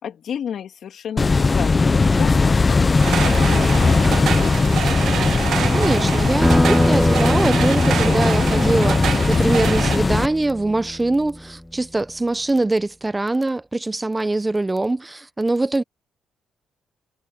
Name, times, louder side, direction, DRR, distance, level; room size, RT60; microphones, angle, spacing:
voice 1, 0.0-5.2, left 8 dB, 65° left, 2.8 m, -33 dB
sound 1, 1.2-10.3, left 4 dB, 30° left, 0.6 m, -18 dB
sound 2, 3.0-10.0, right 9 dB, 65° right, 0.5 m, -26 dB
voice 2, 5.7-15.8, right 2 dB, 15° right, 0.7 m, -23 dB
sound 3, 6.4-11.5, left 1 dB, 5° left, 1.5 m, -23 dB
cardioid pair, 90°, 0 cm